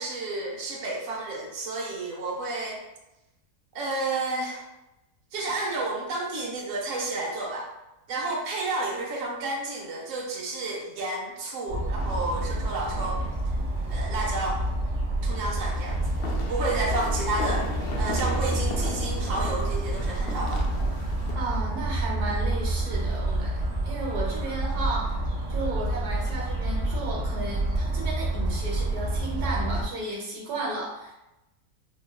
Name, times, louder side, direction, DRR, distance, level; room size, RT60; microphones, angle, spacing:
voice 1, 0.0-2.8 3.7-4.6 5.3-7.7 8.1-13.2 13.9-14.6 15.2-16.2 16.5-17.6 18.0-20.7, right 2 dB, 60° right, -2 dB, 1.1 m, -31 dB
sound 1, 11.7-29.8, right 2 dB, 40° right, 0.9 m, -28 dB
sound 2, 12.0-13.5 13.8-13.9 15.3-21.4, left 3 dB, 85° left, 0.5 m, -38 dB
voice 2, 21.3-25.2 25.5-31.2, right 2 dB, 80° right, -2 dB, 1.3 m, -34 dB
5.1 x 2.6 x 2.2 m, 0.94 s
omnidirectional pair, 1.6 m